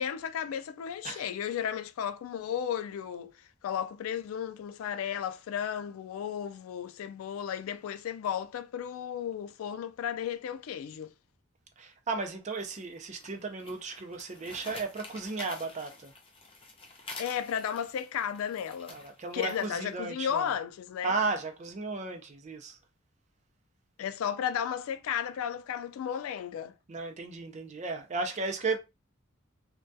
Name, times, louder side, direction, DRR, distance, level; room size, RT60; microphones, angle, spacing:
voice 1, 0.0-11.1 17.2-19.0 19.3-21.1 24.0-26.7, left 8 dB, 85° left, 0.3 m, -34 dB
voice 2, 11.8-16.1 18.9-20.5 21.0-22.8 26.9-28.8, right 3 dB, 35° right, 0.4 m, -34 dB
sound 1, 12.5-19.9, left 3 dB, 25° left, 0.5 m, -48 dB
2.2 x 2.2 x 2.6 m
head